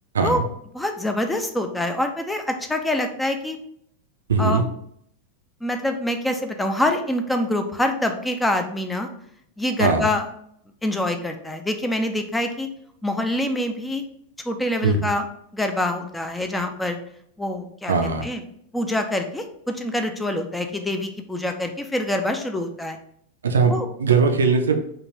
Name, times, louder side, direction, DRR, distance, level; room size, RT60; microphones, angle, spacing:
voice 1, 0.7-3.6 4.4-4.6 5.6-9.1 9.6-10.3 10.8-12.7 13.0-14.0 14.4-15.2 15.5-17.0 17.4-17.9 18.2-18.4 18.7-23.0 23.7-23.9, left 1 dB, 5° left, 5 dB, 0.4 m, -25 dB
voice 2, 4.3-4.6 9.8-10.1 14.8-15.1 17.9-18.3 23.4-24.8, right 4 dB, 70° right, 6 dB, 0.4 m, -20 dB
3.5 x 2.2 x 3.0 m, 0.69 s
figure-of-eight pair, 90°, 0 cm